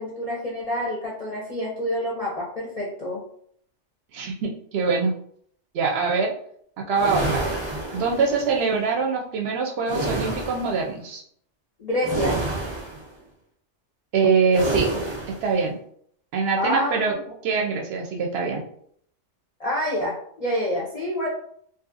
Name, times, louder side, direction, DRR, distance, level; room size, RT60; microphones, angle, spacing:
voice 1, 0.0-3.2 11.8-12.4 16.6-17.2 19.6-21.3, left 1 dB, 45° left, -5 dB, 0.5 m, -27 dB
voice 2, 4.1-5.1 5.7-6.3 6.8-7.5 7.9-11.2 14.1-14.9 15.3-15.8 16.3-17.1 17.4-18.6, right 4 dB, 65° right, 1 dB, 0.7 m, -23 dB
sound 1, 6.9-8.5 9.8-10.8 12.0-13.1 14.5-15.5, right 2 dB, 35° right, 0.4 m, -29 dB
2.7 x 2.4 x 2.5 m, 0.65 s
omnidirectional pair, 1.3 m